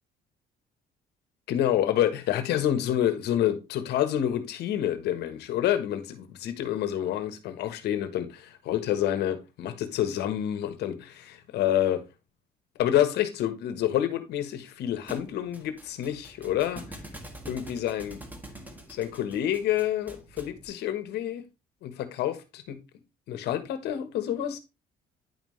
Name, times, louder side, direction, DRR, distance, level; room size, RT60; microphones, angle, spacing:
voice 1, 1.5-12.0 12.8-16.8 17.5-18.2 18.9-21.4 21.8-22.8 23.3-24.6, left 11 dB, 75° left, 1.4 m, -28 dB
Thump thud, 15.1-20.6, right 1 dB, 10° right, 1.6 m, -45 dB
10.0 x 5.5 x 3.2 m
cardioid pair, 110°, 17 cm